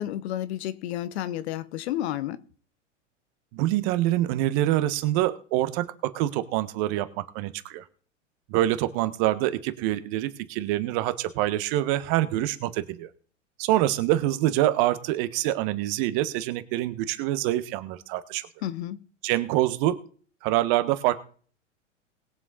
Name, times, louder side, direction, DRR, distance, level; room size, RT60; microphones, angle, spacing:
voice 1, 0.0-2.4 18.6-19.0, left 12 dB, 60° left, 1.2 m, -31 dB
voice 2, 3.5-7.8 8.5-13.1 13.6-18.5 19.2-20.0 20.4-21.2, right 14 dB, 45° right, 1.5 m, -25 dB
20.5 x 7.3 x 4.2 m
hypercardioid pair, 100°, 37 cm